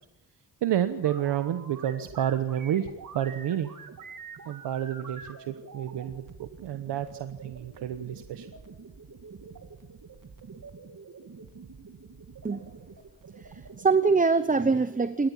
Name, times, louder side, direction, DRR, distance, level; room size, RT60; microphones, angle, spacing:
voice 1, 0.6-3.7 4.5-8.5, right 10 dB, 85° right, 10 dB, 1.1 m, -30 dB
sound 1, 1.0-14.4, right 5 dB, 50° right, 2.8 m, -46 dB
voice 2, 13.4-15.3, right 4 dB, 20° right, 12 dB, 0.9 m, -24 dB
28.5 x 13.5 x 7.4 m, 0.93 s
cardioid pair, 90°, 41 cm